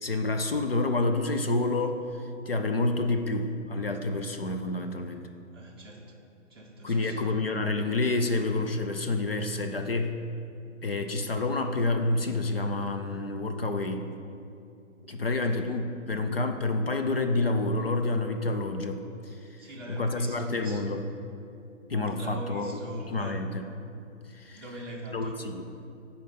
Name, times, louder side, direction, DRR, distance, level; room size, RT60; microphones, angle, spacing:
voice 1, 0.0-5.3 6.8-10.2 10.8-14.1 15.1-21.0 21.9-23.7 24.3-24.6 25.1-25.6, left 2 dB, 50° left, 6 dB, 0.4 m, -29 dB
voice 2, 5.5-6.0 6.5-7.3 15.2-15.6 19.4-20.9 22.2-23.4 24.5-25.4, right 1 dB, 20° right, -8 dB, 0.6 m, -42 dB
8.4 x 4.4 x 5.6 m, 2.7 s
hypercardioid pair, 180°, 39 cm